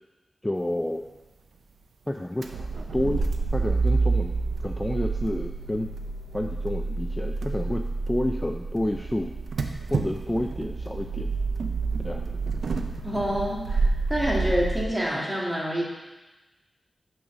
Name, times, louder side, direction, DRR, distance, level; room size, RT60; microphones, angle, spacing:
voice 1, 0.4-1.0 2.1-2.5 2.9-3.3 3.5-4.3 4.6-5.9 6.3-9.3 9.9-11.4 12.0-12.2, left 1 dB, 15° left, 3 dB, 0.4 m, -29 dB
sound 1, 2.4-14.9, right 3 dB, 85° right, 0.5 m, -28 dB
voice 2, 13.0-15.9, equal, 15° right, -4 dB, 1.9 m, -27 dB
6.0 x 4.1 x 6.0 m, 1.1 s
cardioid pair, 60°, 0 cm